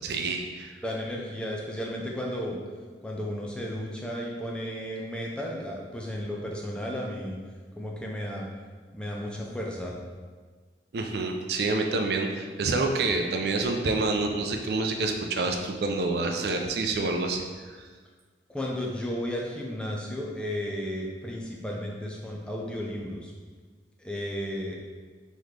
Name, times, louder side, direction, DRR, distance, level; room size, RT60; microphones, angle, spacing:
voice 1, 0.0-0.7 10.9-17.9, right 3 dB, 60° right, 3 dB, 0.4 m, -28 dB
voice 2, 0.8-2.6 3.0-7.4 7.8-8.5 8.9-9.9 18.5-23.3 24.0-24.8, equal, 5° left, -2 dB, 0.4 m, -33 dB
4.0 x 3.0 x 3.2 m, 1.5 s
head